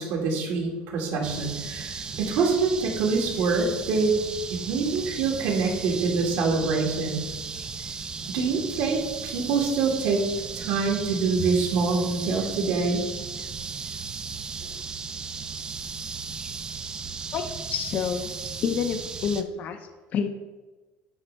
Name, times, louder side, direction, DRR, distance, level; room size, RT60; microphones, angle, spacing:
voice 1, 0.0-4.2 4.7-7.2 8.3-10.2 10.6-13.1, right 4 dB, 70° right, 0 dB, 2.0 m, -25 dB
sound 1, 1.2-19.4, right 5 dB, 20° right, 0.4 m, -36 dB
voice 2, 17.3-18.3 18.6-20.3, left 7 dB, 45° left, 7 dB, 0.6 m, -29 dB
9.6 x 3.2 x 5.3 m, 1.2 s
cardioid pair, 140°, 4 cm